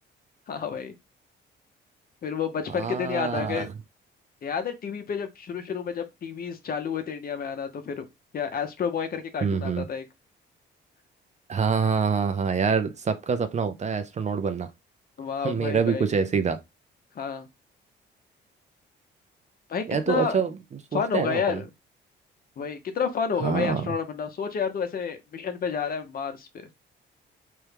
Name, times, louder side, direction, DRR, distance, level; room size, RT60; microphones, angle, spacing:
voice 1, 0.5-0.9 2.2-3.7 4.4-8.0 8.3-10.0 15.2-16.1 17.1-17.5 19.7-20.4 20.9-21.7 22.6-26.7, left 6 dB, 50° left, 0.7 m, -30 dB
voice 2, 2.7-3.7 9.4-9.9 11.5-14.7 15.4-16.6 19.9-20.5 20.9-21.6 23.4-23.9, right 6 dB, 35° right, 0.5 m, -26 dB
3.0 x 2.2 x 3.3 m
cardioid pair, 90°, 20 cm